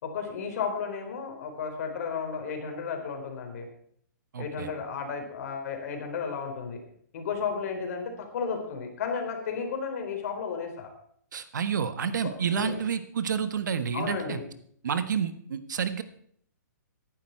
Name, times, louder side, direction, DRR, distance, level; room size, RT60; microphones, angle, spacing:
voice 1, 0.0-3.7 4.4-6.8 7.1-10.9 12.2-12.8 13.9-14.4, left 6 dB, 55° left, 3 dB, 4.1 m, -33 dB
voice 2, 4.3-4.7 11.3-14.4 14.8-16.0, right 7 dB, 75° right, 11 dB, 1.4 m, -29 dB
15.5 x 11.0 x 4.6 m, 0.64 s
hypercardioid pair, 150°, 10 cm